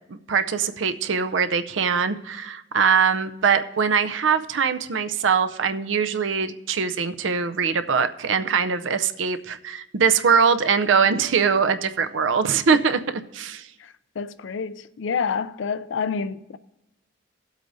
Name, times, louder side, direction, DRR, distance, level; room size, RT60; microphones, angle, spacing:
voice 1, 0.1-13.7, right 6 dB, 80° right, 0.6 m, -22 dB
voice 2, 13.8-16.6, left 5 dB, 70° left, 0.4 m, -28 dB
17.0 x 8.0 x 2.6 m
head